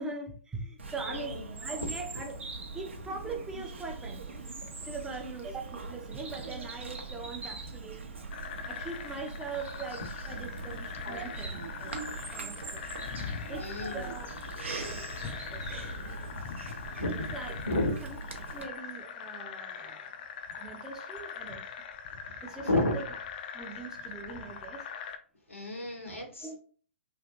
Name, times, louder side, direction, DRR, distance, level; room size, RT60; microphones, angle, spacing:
voice 1, 0.0-2.4 2.7-4.4 4.8-8.1 8.7-11.9 12.3-12.8 13.5-14.3 14.8-15.8 17.0-17.5 18.0-18.2 18.5-21.7 22.4-23.0 23.5-24.9 26.4-26.6, right 3 dB, 10° right, 2 dB, 0.5 m, -42 dB
Bird vocalization bird call bird song, 0.8-18.6, right 3 dB, 70° right, 0.7 m, -41 dB
voice 2, 1.1-1.5 11.0-11.2 13.6-14.0 16.9-17.3 17.6-18.0 22.1-22.2 22.6-23.0 25.5-26.6, left 1 dB, 85° left, 2 dB, 1.0 m, -31 dB
sound 1, 8.3-25.2, left 6 dB, 45° left, 0.4 m, -42 dB
3.3 x 2.5 x 2.5 m, 0.42 s
figure-of-eight pair, 115°, 7 cm